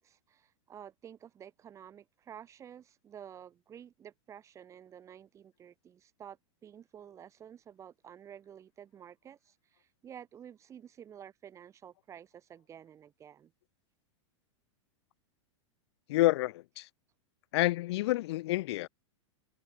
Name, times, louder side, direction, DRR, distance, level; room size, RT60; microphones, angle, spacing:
voice 1, 0.0-13.5, right 9 dB, 20° right, 2.1 m, -51 dB
voice 2, 16.1-16.9 17.5-18.9, left 18 dB, 55° left, 0.7 m, -28 dB
supercardioid pair, 155°, 16 cm